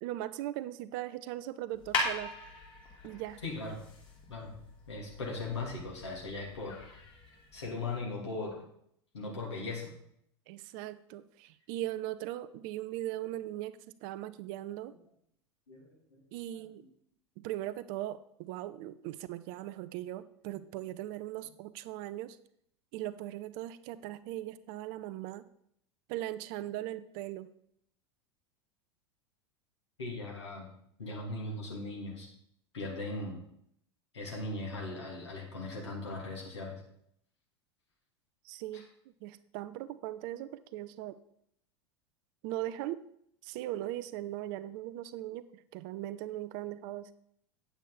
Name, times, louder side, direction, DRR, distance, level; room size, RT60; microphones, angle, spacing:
voice 1, 0.0-2.4 3.0-3.4 10.5-14.9 16.3-16.8 17.4-22.4 22.9-25.4 26.1-27.5 38.4-38.9 39.2-41.2 42.4-43.0 43.4-47.1, right 14 dB, 50° right, 14 dB, 0.6 m, -39 dB
sound 1, 1.7-7.8, left 3 dB, 35° left, 3.2 m, -40 dB
voice 2, 3.4-3.8 4.3-4.5 4.9-6.8 7.5-8.6 9.1-9.9 15.7-16.2 16.5-16.8 20.5-20.6 30.0-30.7 31.0-32.3 32.7-33.4 34.1-36.8 38.7-38.8, left 2 dB, 75° left, -1 dB, 3.0 m, -39 dB
9.1 x 8.1 x 4.2 m, 0.71 s
figure-of-eight pair, 85°, 15 cm